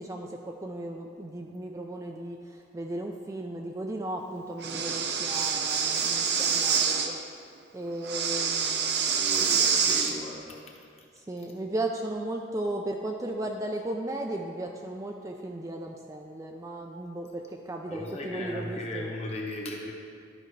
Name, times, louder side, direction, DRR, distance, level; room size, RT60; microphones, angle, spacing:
voice 1, 0.0-9.1 10.4-10.5 11.1-19.1, right 1 dB, 15° right, 2 dB, 0.3 m, -36 dB
Breathing, 4.6-7.1 8.0-10.1, right 6 dB, 60° right, 0.6 m, -26 dB
voice 2, 9.1-10.6 17.9-19.9, left 1 dB, 35° left, -1 dB, 1.0 m, -36 dB
11.5 x 5.4 x 3.2 m, 2.2 s
head